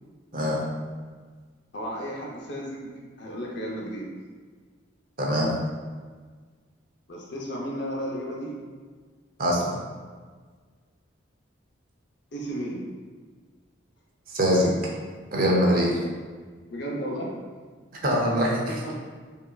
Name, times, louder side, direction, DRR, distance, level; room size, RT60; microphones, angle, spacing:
voice 1, 1.7-2.9 3.2-4.1 7.1-8.5 12.3-12.9 15.7-15.8 16.7-17.3 18.7-19.0, equal, 60° left, -3 dB, 0.8 m, -33 dB
voice 2, 5.2-5.5 9.4-9.8 14.3-14.7 15.3-15.9 17.9-18.7, equal, 50° right, -2 dB, 0.7 m, -23 dB
5.4 x 2.8 x 2.4 m, 1.5 s
head